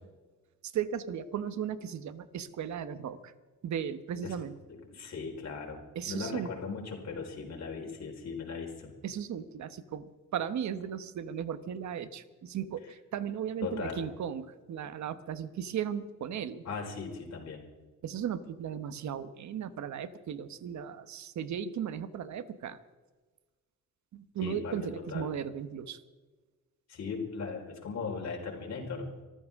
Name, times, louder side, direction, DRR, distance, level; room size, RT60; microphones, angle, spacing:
voice 1, 0.6-3.3 3.6-4.5 5.9-6.5 9.0-16.6 18.0-22.8 24.1-26.0, right 8 dB, 60° right, 12 dB, 1.1 m, -36 dB
voice 2, 4.9-8.9 13.6-14.0 16.6-17.6 24.4-25.3 26.9-29.1, left 5 dB, 55° left, 0 dB, 4.6 m, -38 dB
26.0 x 14.5 x 3.6 m, 1.3 s
cardioid pair, 120°, 32 cm